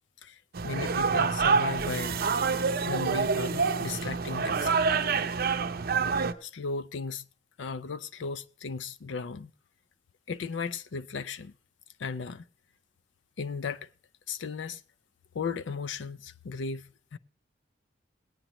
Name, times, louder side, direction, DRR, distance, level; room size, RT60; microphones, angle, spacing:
voice 1, 0.2-2.2 2.8-4.8 6.4-7.2 7.6-9.5 10.3-11.5 12.0-12.4 13.4-13.9 14.3-14.8 15.3-17.2, left 4 dB, 75° left, 0.5 m, -36 dB
sound 1, 0.5-6.3, right 5 dB, 55° right, 0.6 m, -27 dB
18.0 x 8.9 x 3.0 m
head